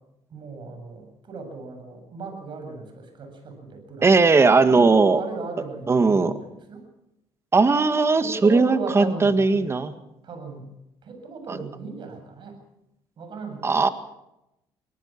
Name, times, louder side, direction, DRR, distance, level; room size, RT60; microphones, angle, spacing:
voice 1, 0.3-4.1 4.6-6.9 8.2-9.7 10.2-10.7 11.0-12.6 13.2-13.7, right 3 dB, 50° right, 6 dB, 7.8 m, -37 dB
voice 2, 4.0-5.2 5.9-6.3 7.5-9.9 13.6-13.9, right 4 dB, 25° right, 10 dB, 1.9 m, -18 dB
24.5 x 18.0 x 6.1 m, 0.86 s
cardioid pair, 95°, 10 cm